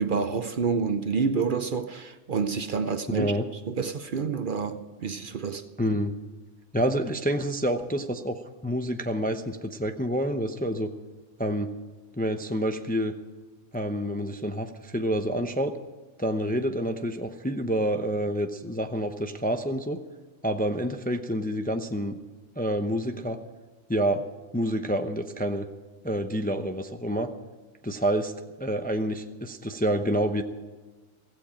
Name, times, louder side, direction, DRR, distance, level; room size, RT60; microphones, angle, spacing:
voice 1, 0.0-3.4 3.7-5.6, right 5 dB, 50° right, 0.8 m, -28 dB
voice 2, 3.1-3.4 5.8-6.1 6.7-10.9 11.4-11.7 12.2-13.1 13.7-15.7 16.2-20.0 20.4-22.2 22.6-23.4 23.9-24.3 24.5-25.7 26.0-27.3 27.8-28.3 28.6-30.4, equal, 10° left, 0.6 m, -28 dB
16.0 x 15.0 x 5.1 m
omnidirectional pair, 1.2 m